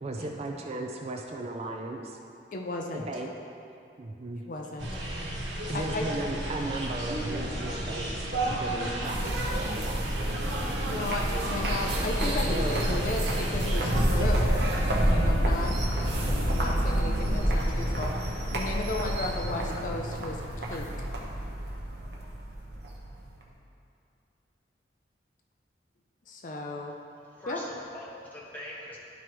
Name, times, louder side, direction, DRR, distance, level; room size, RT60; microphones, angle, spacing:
voice 1, 0.0-2.2 2.9-3.3 4.0-4.4 5.6-10.4 12.5-13.0, right 2 dB, 35° right, 2 dB, 0.4 m, -36 dB
voice 2, 2.5-3.1 4.5-5.0 5.7-6.1 10.9-14.5 15.0-15.7 16.2-18.1 18.5-21.1 26.3-26.9 27.5-27.6, left 2 dB, 45° left, 1 dB, 0.5 m, -35 dB
sound 1, 4.8-13.8, right 1 dB, 80° right, 1.4 m, -34 dB
sound 2, 9.0-23.4, right 1 dB, 65° right, 0.9 m, -28 dB
sound 3, 11.4-19.4, left 1 dB, 70° left, 1.0 m, -47 dB
voice 3, 27.2-29.0, left 1 dB, 10° left, -6 dB, 1.2 m, -43 dB
11.5 x 4.7 x 3.1 m, 2.7 s
head